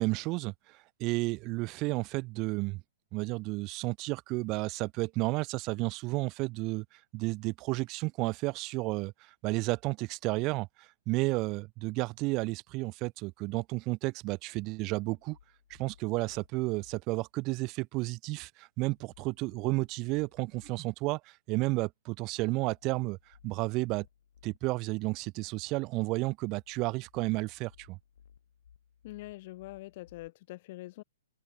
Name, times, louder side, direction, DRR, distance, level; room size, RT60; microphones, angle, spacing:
voice 1, 0.0-2.8 3.1-15.4 15.7-24.1 24.4-28.0, right 23 dB, 35° right, 1.4 m, -32 dB
sound 1, 15.0-17.0 18.9-20.8 22.7-24.6 26.5-30.3, left 8 dB, 70° left, 7.7 m, -61 dB
voice 2, 29.0-31.0, left 19 dB, 45° left, 0.8 m, -44 dB
hypercardioid pair, 130°, 0 cm